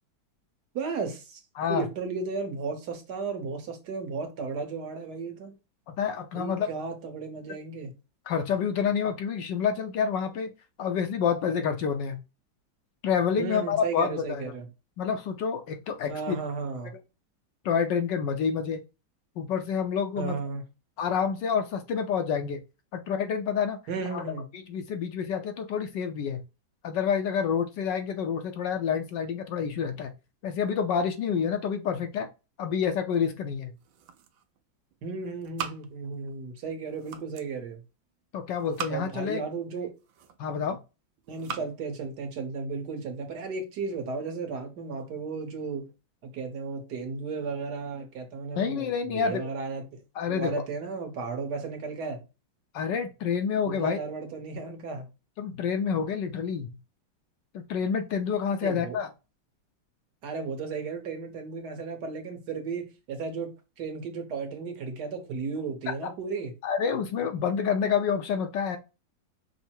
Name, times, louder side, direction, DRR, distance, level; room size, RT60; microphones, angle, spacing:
voice 1, 0.7-1.4 1.7-5.5 6.3-7.9 13.4-14.7 16.1-16.9 20.2-20.7 23.9-24.5 35.0-37.8 38.9-39.9 41.3-45.9 46.2-50.0 50.3-52.2 53.6-55.1 58.6-59.0 60.2-63.5 63.8-66.5, right 4 dB, 60° right, 1.5 m, -34 dB
voice 2, 1.6-1.9 5.9-6.7 8.3-10.5 10.8-12.2 13.0-14.5 15.0-16.4 17.6-18.8 19.4-20.4 21.0-22.6 22.9-23.8 24.1-24.2 24.7-26.4 26.8-30.1 30.4-32.3 32.6-33.7 38.3-39.4 40.4-40.8 48.6-49.4 50.1-50.6 52.7-54.0 55.4-56.8 57.5-59.1 66.0-66.1 66.6-68.8, left 7 dB, 70° left, 1.2 m, -28 dB
sound 1, 33.6-34.6 34.9-36.4 36.7-37.6 38.4-39.3 39.9-40.6 41.2-41.7, right 7 dB, 80° right, 1.4 m, -41 dB
5.6 x 2.1 x 4.3 m
omnidirectional pair, 2.2 m